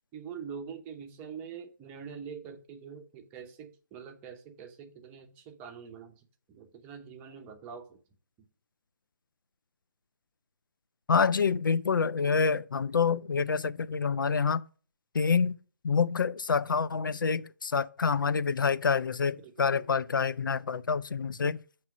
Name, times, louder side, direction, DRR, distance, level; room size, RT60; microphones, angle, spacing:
voice 1, 0.1-6.2 6.5-8.0 8.4-8.5 19.4-20.0, right 6 dB, 15° right, 0.7 m, -44 dB
voice 2, 11.1-14.6 15.1-15.6 15.8-21.6, left 5 dB, 85° left, 0.4 m, -27 dB
7.2 x 3.1 x 5.9 m
figure-of-eight pair, 150°, 11 cm